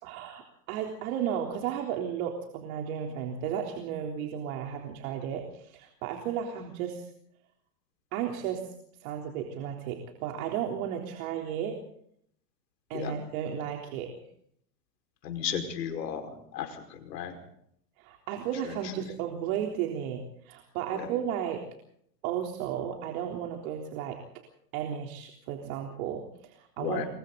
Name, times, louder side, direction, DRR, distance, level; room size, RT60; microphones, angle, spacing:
voice 1, 0.0-7.0 8.1-8.6 9.0-11.8 12.9-14.1 18.0-21.6 22.2-24.2 24.7-27.0, right 9 dB, 55° right, 2 dB, 3.7 m, -34 dB
voice 2, 15.2-17.4 18.7-18.8 21.0-21.1 26.8-27.1, left 8 dB, 75° left, 6 dB, 5.3 m, -34 dB
27.5 x 23.5 x 4.0 m, 0.69 s
hypercardioid pair, 120°, 49 cm